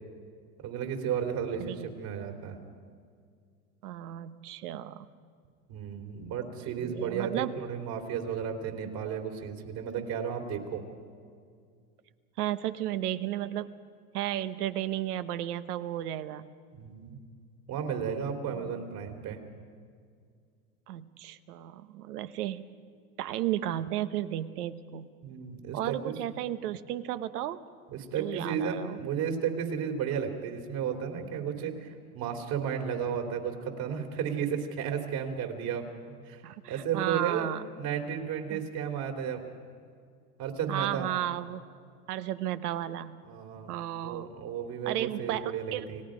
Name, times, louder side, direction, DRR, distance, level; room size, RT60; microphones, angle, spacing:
voice 1, 0.6-2.6 5.7-10.8 16.7-17.2 17.7-19.4 25.2-26.1 27.9-31.9 32.1-35.9 36.2-36.4 36.7-37.5 37.8-39.4 40.4-41.1 43.3-43.7 44.0-46.0, right 7 dB, 50° right, 3 dB, 3.4 m, -33 dB
voice 2, 1.6-2.0 3.8-5.1 6.6-7.5 12.4-13.7 14.1-16.4 18.5-18.8 20.9-22.6 23.2-25.1 25.7-27.6 28.2-29.0 36.4-37.6 38.5-38.6 40.7-41.6 42.1-43.2 43.7-44.3 44.8-45.8, right 12 dB, 75° right, 12 dB, 1.1 m, -34 dB
30.0 x 17.5 x 5.2 m, 2.1 s
hypercardioid pair, 105°, 46 cm